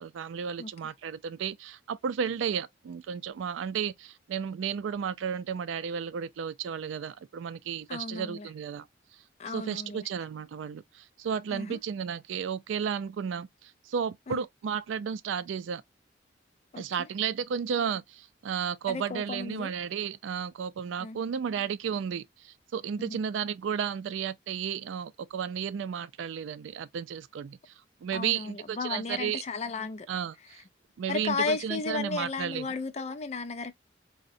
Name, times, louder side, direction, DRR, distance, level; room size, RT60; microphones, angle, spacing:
voice 1, 0.0-8.9 9.5-15.8 16.8-27.7 28.0-29.4 30.1-30.6 31.0-32.7, right 7 dB, 90° right, 0.3 m, -33 dB
voice 2, 7.9-8.5 9.4-10.1 11.5-11.8 14.3-14.4 16.7-17.1 18.9-19.7 21.0-21.2 23.0-23.2 28.1-30.1 31.1-33.7, left 4 dB, 35° left, 0.3 m, -34 dB
3.7 x 2.1 x 2.5 m
head